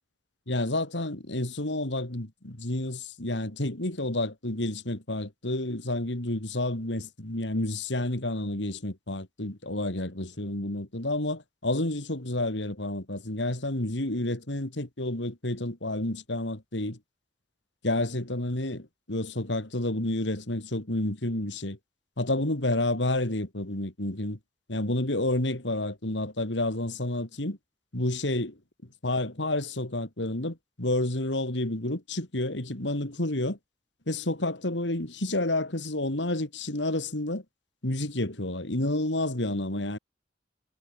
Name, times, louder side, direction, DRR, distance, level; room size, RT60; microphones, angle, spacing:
voice 1, 0.5-17.0 17.8-21.8 22.2-24.4 24.7-27.6 27.9-28.6 29.0-33.6 34.1-37.4 37.8-40.0, left 1 dB, 85° left, 3.4 m, -30 dB
head